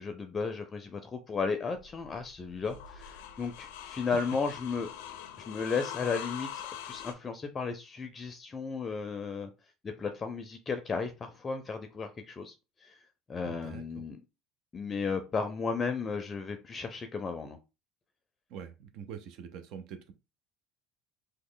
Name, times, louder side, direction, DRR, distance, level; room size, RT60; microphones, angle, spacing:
voice 1, 0.0-4.9 5.4-9.5 9.8-12.5 12.8-13.0 13.3-14.2 14.7-17.6, left 5 dB, 25° left, 7 dB, 0.4 m, -34 dB
sound 1, 1.8-7.1, left 10 dB, 90° left, 0.5 m, -43 dB
voice 2, 13.4-14.0 18.5-20.1, right 7 dB, 65° right, 8 dB, 0.4 m, -45 dB
3.0 x 2.0 x 3.7 m, 0.28 s
supercardioid pair, 110°, 0 cm